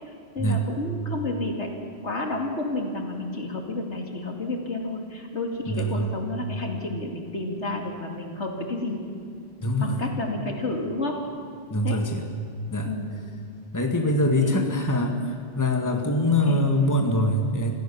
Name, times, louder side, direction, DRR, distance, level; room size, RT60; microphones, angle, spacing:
voice 1, 0.3-1.7 2.0-9.0 9.8-11.2 11.8-12.0 12.8-13.1 14.4-14.7 16.5-16.6, left 2 dB, 70° left, 2 dB, 2.8 m, -30 dB
voice 2, 5.7-6.1 9.6-10.0 11.7-12.3 12.7-12.9 13.7-17.7, left 1 dB, 15° left, 3 dB, 1.7 m, -24 dB
26.0 x 16.0 x 7.1 m, 2.3 s
omnidirectional pair, 1.2 m